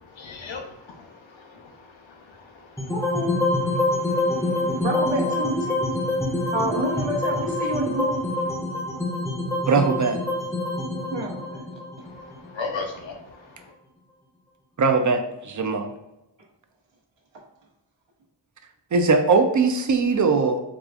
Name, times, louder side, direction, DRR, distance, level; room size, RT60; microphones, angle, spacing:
voice 1, 0.0-2.9 3.7-4.8 5.9-6.5 12.0-13.7, left 4 dB, 80° left, 2 dB, 0.8 m, -39 dB
sound 1, 2.8-13.0, left 1 dB, 5° left, 0.6 m, -26 dB
voice 2, 2.9-3.3 4.8-5.9 6.5-8.1 11.1-11.8, equal, 75° right, -2 dB, 0.9 m, -29 dB
voice 3, 9.6-10.2 14.8-15.9 18.9-20.6, right 4 dB, 45° right, 6 dB, 0.4 m, -20 dB
4.8 x 2.4 x 2.4 m, 0.92 s
wide cardioid pair, 80°, 45 cm